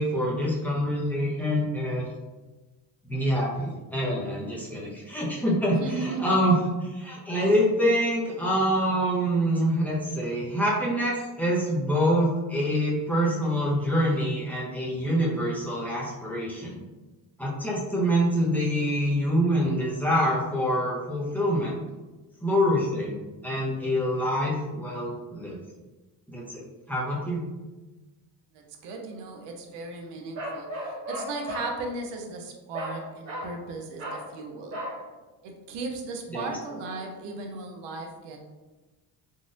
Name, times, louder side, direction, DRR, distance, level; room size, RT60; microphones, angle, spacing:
voice 1, 0.0-2.1 3.1-16.8 17.4-21.8 22.4-25.6 26.3-27.5 36.3-36.6, equal, 5° left, -6 dB, 0.7 m, -26 dB
voice 2, 5.7-6.4 28.5-34.8 35.4-38.4, right 3 dB, 80° right, 2 dB, 0.7 m, -36 dB
Bark, 30.3-31.7 32.7-33.0 33.2-33.5 34.0-34.3 34.7-35.0, equal, 35° right, 1.4 m, -35 dB
3.9 x 2.4 x 2.5 m, 1.2 s
cardioid pair, 135°, 41 cm